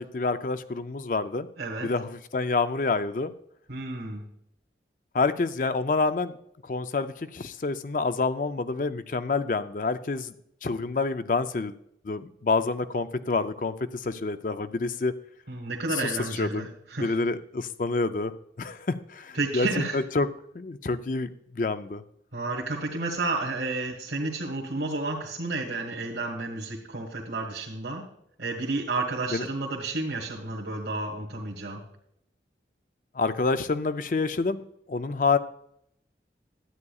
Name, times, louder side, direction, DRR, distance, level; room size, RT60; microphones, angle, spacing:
voice 1, 0.0-1.5 1.8-3.3 5.1-6.4 6.6-10.3 10.6-11.8 12.0-15.1 15.9-16.1 16.4-16.7 17.0-18.3 18.6-20.3 20.5-22.0 29.3-29.5 33.1-35.4, left 3 dB, 45° left, 12 dB, 0.4 m, -28 dB
voice 2, 1.6-1.9 3.7-4.3 15.5-17.1 19.3-20.0 22.3-28.1 28.4-31.8, right 2 dB, 80° right, -4 dB, 1.6 m, -31 dB
12.5 x 9.4 x 2.4 m, 0.72 s
head